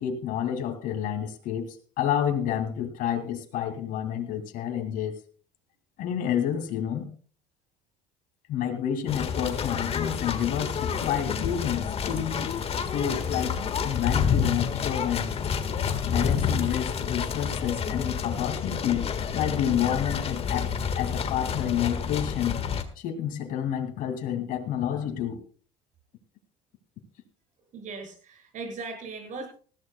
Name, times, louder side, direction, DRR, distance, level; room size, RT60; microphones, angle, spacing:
voice 1, 0.0-5.2 6.0-7.1 8.5-12.5 12.9-13.6 13.8-15.3 16.0-20.7 21.0-22.6 23.0-25.4, left 9 dB, 60° left, 5 dB, 2.4 m, -29 dB
sound 1, 9.1-22.8, left 7 dB, 40° left, 1.6 m, -29 dB
voice 2, 27.7-29.5, right 3 dB, 55° right, 3 dB, 7.1 m, -38 dB
19.0 x 14.5 x 2.3 m, 0.41 s
supercardioid pair, 80°, 16 cm